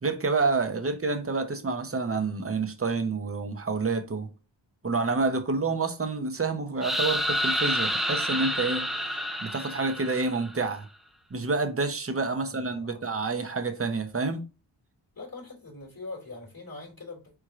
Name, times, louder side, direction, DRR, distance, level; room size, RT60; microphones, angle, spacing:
voice 1, 0.0-4.3 4.8-8.9 9.4-10.9 11.3-14.4, right 3 dB, 30° right, 0.8 m, -28 dB
sound 1, 6.8-10.6, equal, ahead, 0.5 m, -29 dB
voice 2, 12.4-13.0 15.1-17.3, left 3 dB, 50° left, 2.8 m, -43 dB
4.6 x 4.4 x 2.5 m
wide cardioid pair, 90°, 46 cm